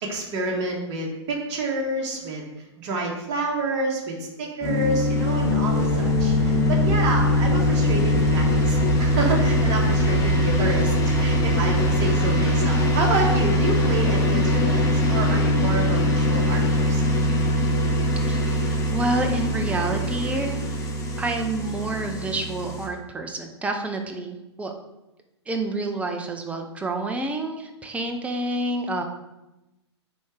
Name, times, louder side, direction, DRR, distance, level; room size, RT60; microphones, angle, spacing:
voice 1, 0.0-2.5 2.8-17.1, right 2 dB, 35° right, -1 dB, 1.5 m, -28 dB
sound 1, 4.6-22.9, left 1 dB, 20° left, 1.2 m, -22 dB
Aircraft, 5.3-12.1, right 2 dB, 85° right, 0.9 m, -34 dB
voice 2, 18.3-20.9 21.2-24.7 25.5-29.0, right 2 dB, 10° right, 4 dB, 0.6 m, -29 dB
9.2 x 3.5 x 3.3 m, 0.97 s
figure-of-eight pair, 110°, 15 cm